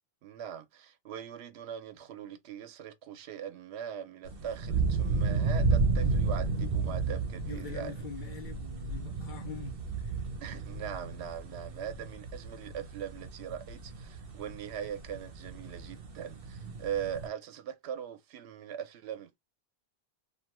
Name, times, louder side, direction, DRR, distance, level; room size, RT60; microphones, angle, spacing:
voice 1, 0.2-8.1 10.4-19.4, right 9 dB, 90° right, 0.8 m, -41 dB
sound 1, 4.2-17.3, right 4 dB, 65° right, 0.9 m, -32 dB
voice 2, 7.5-10.2, left 7 dB, 55° left, 0.7 m, -44 dB
2.7 x 2.2 x 2.9 m
omnidirectional pair, 1.1 m